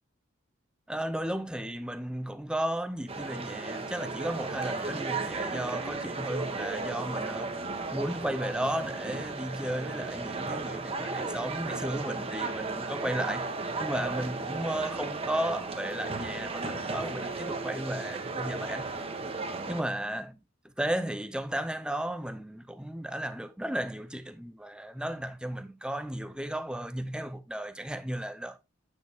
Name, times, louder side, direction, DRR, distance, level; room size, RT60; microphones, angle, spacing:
voice 1, 0.9-7.6 7.9-13.5 13.8-18.9 19.7-28.6, right 1 dB, 5° right, 0.5 m, -34 dB
sound 1, 3.1-19.8, right 3 dB, 25° right, 0.9 m, -35 dB
8.5 x 6.3 x 3.4 m
head